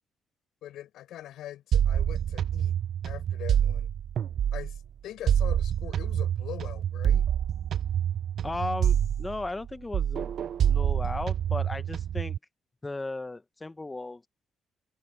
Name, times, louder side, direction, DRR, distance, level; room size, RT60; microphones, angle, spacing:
voice 1, 0.6-2.8 3.0-3.9 4.5-7.3, left 12 dB, 80° left, 4.6 m, -42 dB
sound 1, 1.7-4.8 5.3-9.7 9.9-12.4, right 9 dB, 65° right, 0.4 m, -27 dB
voice 2, 8.4-10.4 10.7-12.4 12.8-14.3, left 2 dB, 20° left, 0.8 m, -35 dB
cardioid pair, 90°, 0 cm